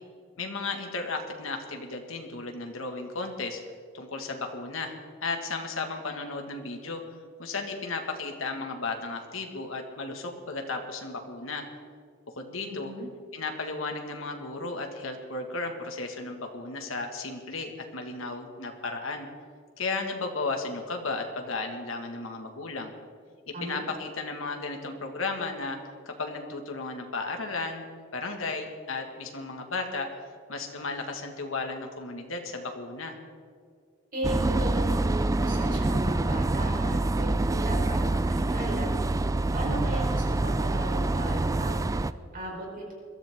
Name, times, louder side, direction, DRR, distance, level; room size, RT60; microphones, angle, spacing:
voice 1, 0.4-3.6 3.9-4.9 5.2-7.0 7.4-11.6 12.4-12.9 13.3-19.3 19.8-22.9 23.5-25.8 26.0-27.8 28.1-30.1 30.5-33.2, left 3 dB, 70° left, 3 dB, 1.9 m, -34 dB
voice 2, 12.6-13.0 23.5-23.8 34.1-38.9 39.5-41.8 42.3-42.9, right 1 dB, 45° right, -1 dB, 4.3 m, -35 dB
sound 1, 34.2-42.1, right 2 dB, 15° right, 0.3 m, -26 dB
22.0 x 14.0 x 3.7 m, 2.1 s
head